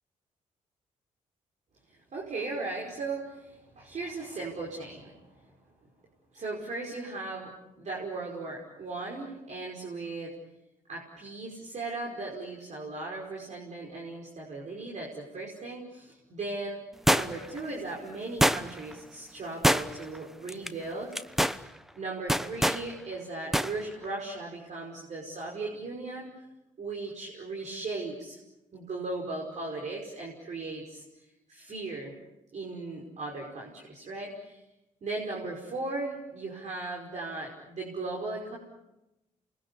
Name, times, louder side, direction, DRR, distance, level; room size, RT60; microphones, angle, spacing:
voice 1, 2.1-5.5 6.3-10.4 10.9-16.8 17.1-21.2 22.0-26.3 26.8-28.4 28.7-31.0 31.5-32.1 32.5-34.6 35.0-38.6, right 3 dB, 55° right, -2 dB, 5.5 m, -37 dB
sound 1, 17.1-17.6 18.4-18.9 19.6-20.2 20.5-20.7 21.1-21.6 22.3-22.8 23.5-23.7 24.0-24.1, equal, ahead, 1.0 m, -24 dB
28.0 x 22.5 x 8.4 m, 0.98 s
supercardioid pair, 65°, 14 cm